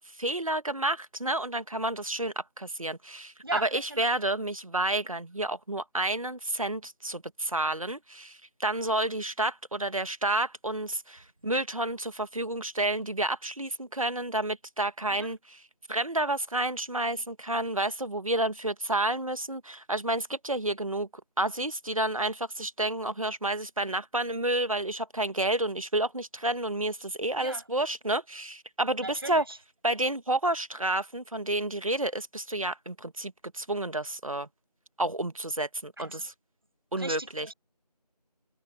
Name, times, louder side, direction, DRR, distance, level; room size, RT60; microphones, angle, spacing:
voice 1, 0.2-15.6 15.9-21.1 21.4-29.4 29.8-34.5 35.0-36.3 36.9-37.5, right 1 dB, 55° right, 1.6 m, -30 dB
voice 2, 3.4-4.1 15.1-15.3 27.4-27.6 29.0-29.6 36.0-36.3 37.0-37.5, right 2 dB, 35° right, 7.2 m, -38 dB
figure-of-eight pair, 180°, 21 cm